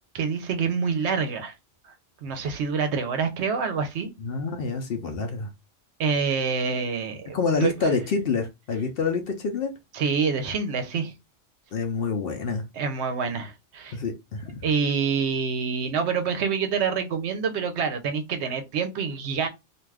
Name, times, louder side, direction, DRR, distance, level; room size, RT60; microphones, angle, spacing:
voice 1, 0.1-1.5 2.2-4.1 6.0-7.4 7.6-7.9 9.9-11.1 12.7-14.0 14.6-19.5, right 5 dB, 70° right, 0.8 m, -26 dB
voice 2, 4.2-5.5 7.3-9.7 11.7-12.6 13.9-14.6, left 4 dB, 60° left, 0.7 m, -27 dB
2.5 x 2.3 x 3.3 m
omnidirectional pair, 1.3 m